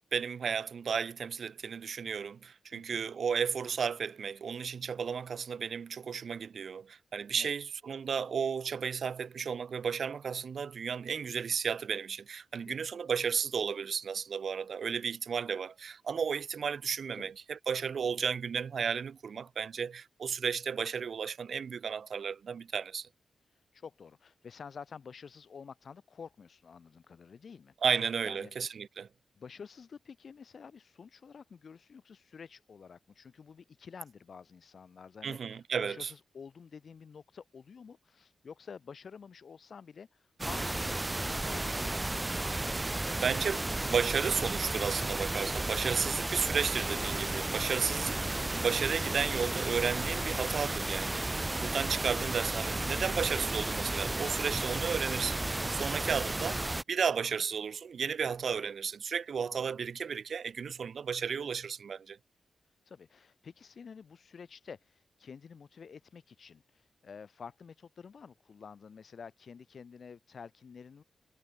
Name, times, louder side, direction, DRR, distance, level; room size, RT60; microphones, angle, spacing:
voice 1, 0.1-23.1 27.8-29.1 35.2-36.1 42.7-42.8 43.2-56.6 56.9-62.2, right 6 dB, 55° right, 1.1 m, -33 dB
voice 2, 23.7-27.7 28.2-28.7 29.3-42.5 51.7-52.0 62.9-71.0, left 6 dB, 50° left, 7.3 m, -50 dB
sound 1, 40.4-56.8, right 2 dB, 15° right, 1.3 m, -33 dB
wide cardioid pair, 155°, 0 cm